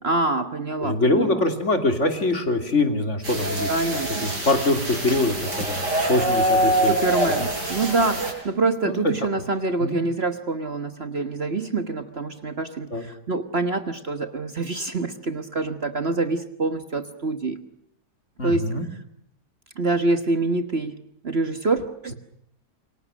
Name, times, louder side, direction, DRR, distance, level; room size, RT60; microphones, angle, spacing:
voice 1, 0.0-1.4 3.7-4.3 6.8-17.6 18.4-18.7 19.8-21.0 21.2-22.2, right 3 dB, 40° right, 10 dB, 1.6 m, -26 dB
voice 2, 0.8-3.9 4.2-6.9 8.8-9.1 9.8-10.0 12.9-13.0 18.4-18.9, left 2 dB, 45° left, 7 dB, 3.4 m, -23 dB
sound 1, 3.2-8.3, right 1 dB, 85° right, 7.7 m, -25 dB
28.0 x 24.5 x 6.5 m, 0.72 s
omnidirectional pair, 1.8 m